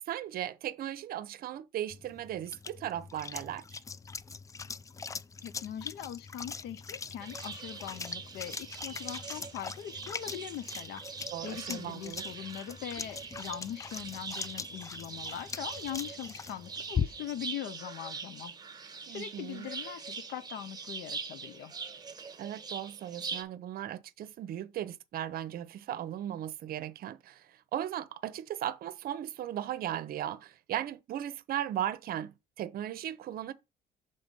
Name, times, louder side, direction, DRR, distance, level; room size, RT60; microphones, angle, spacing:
voice 1, 0.1-3.8 11.3-12.2 19.1-19.7 22.4-33.5, right 11 dB, 60° right, 0.7 m, -37 dB
sound 1, 1.9-17.4, left 5 dB, 20° left, 0.4 m, -41 dB
voice 2, 5.4-11.0 11.4-18.5 19.1-21.7, left 10 dB, 75° left, 0.9 m, -41 dB
sound 2, 7.2-23.4, right 5 dB, 25° right, 1.3 m, -43 dB
6.5 x 3.9 x 5.4 m
cardioid pair, 110°, 17 cm